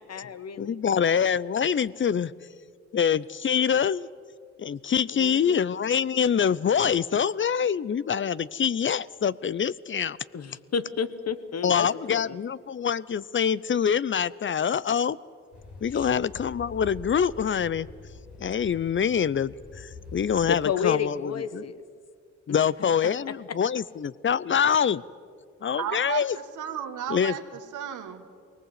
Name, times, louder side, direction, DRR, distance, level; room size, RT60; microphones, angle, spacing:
voice 1, 0.0-0.8 5.1-5.6 10.3-12.4 15.9-16.1 20.4-21.8 22.5-22.6, left 6 dB, 55° left, 14 dB, 1.3 m, -31 dB
voice 2, 0.6-2.3 2.9-4.1 4.6-10.2 11.6-15.2 15.8-17.9 18.4-21.6 22.5-25.0 25.6-26.4 27.1-27.3, left 7 dB, 40° left, 20 dB, 0.6 m, -25 dB
sound 1, 15.5-20.5, left 4 dB, 70° left, 4.7 m, -45 dB
voice 3, 25.8-27.4 27.7-28.2, right 10 dB, 85° right, 7 dB, 1.8 m, -33 dB
21.0 x 19.0 x 8.2 m, 2.2 s
supercardioid pair, 50°, 30 cm